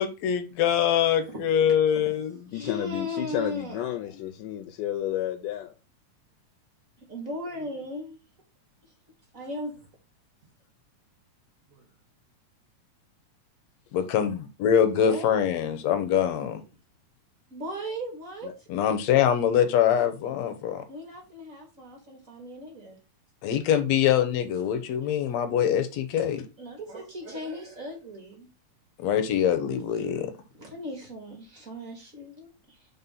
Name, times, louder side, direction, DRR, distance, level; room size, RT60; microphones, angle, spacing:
voice 1, 0.0-2.4 13.9-16.6 18.7-20.8 23.4-26.4 29.0-30.3, left 9 dB, 70° left, 1.9 m, -24 dB
voice 2, 1.2-2.1 2.5-4.2 7.0-8.2 9.3-9.9 11.7-11.9 15.0-15.5 17.5-18.7 20.9-23.0 26.2-26.3 26.6-28.5 30.5-32.9, equal, 40° right, 1.2 m, -38 dB
voice 3, 2.5-5.7 18.4-18.5, left 12 dB, 90° left, 2.2 m, -31 dB
4.4 x 4.2 x 5.4 m
omnidirectional pair, 3.6 m